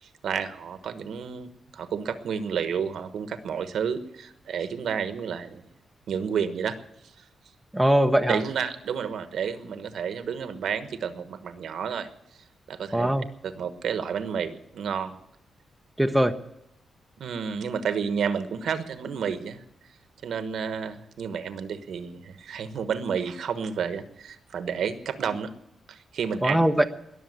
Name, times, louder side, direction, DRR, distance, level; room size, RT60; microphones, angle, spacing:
voice 1, 0.0-5.7 6.1-6.7 7.2-7.3 8.3-12.1 12.7-13.1 13.4-15.1 17.2-19.6 20.2-25.5 25.9-26.6, right 7 dB, 75° right, 10 dB, 1.3 m, -31 dB
voice 2, 7.7-8.4 12.9-13.3 16.0-16.3 26.4-26.9, right 1 dB, 5° right, 6 dB, 0.8 m, -21 dB
20.5 x 7.1 x 9.4 m, 0.81 s
wide cardioid pair, 130°, 0 cm